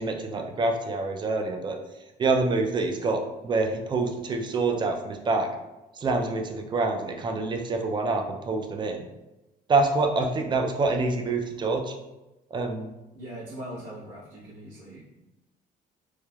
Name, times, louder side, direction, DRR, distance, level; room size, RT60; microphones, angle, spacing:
voice 1, 0.0-1.8 2.2-5.5 5.9-9.1 9.7-12.0 12.5-12.9, right 3 dB, 25° right, 3 dB, 0.4 m, -26 dB
voice 2, 13.1-15.0, right 1 dB, 85° right, -11 dB, 0.9 m, -40 dB
3.1 x 2.1 x 2.3 m, 0.99 s
cardioid pair, 110°, 17 cm